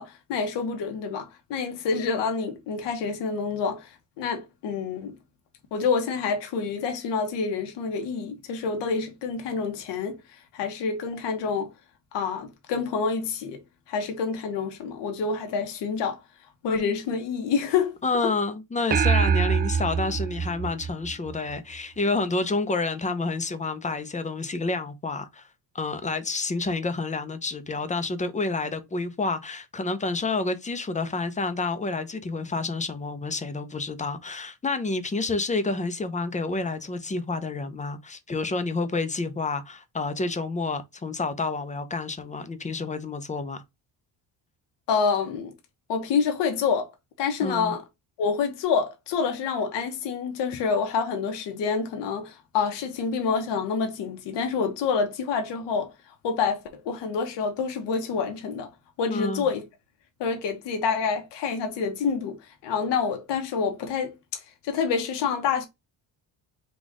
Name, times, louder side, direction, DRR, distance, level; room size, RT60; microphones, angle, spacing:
voice 1, 0.0-3.9 4.2-5.2 5.7-10.2 10.5-11.7 12.1-13.6 13.9-16.2 16.6-17.9 44.9-45.5 45.9-46.9 47.2-47.8 48.2-55.9 56.2-58.7 59.0-59.6 60.2-62.4 62.6-64.1 64.6-65.7, left 5 dB, 85° left, 1.2 m, -27 dB
voice 2, 18.0-25.5 25.7-43.6 47.4-47.7 59.1-59.5, left 3 dB, 15° left, 0.7 m, -29 dB
sound 1, 18.9-21.6, right 6 dB, 25° right, 0.3 m, -24 dB
4.1 x 2.5 x 4.7 m
cardioid pair, 110°, 41 cm